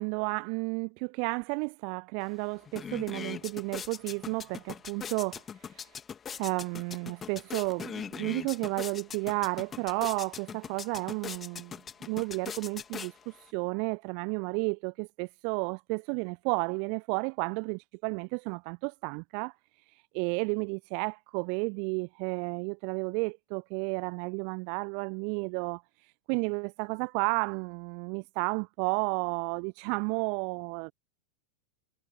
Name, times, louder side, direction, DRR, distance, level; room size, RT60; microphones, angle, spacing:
voice 1, 0.0-6.0 6.4-30.9, right 40 dB or more, 45° right, 0.5 m, -32 dB
sound 1, 2.2-2.3 2.6-13.5, left 7 dB, 20° left, 2.1 m, -41 dB
figure-of-eight pair, 90°, 0 cm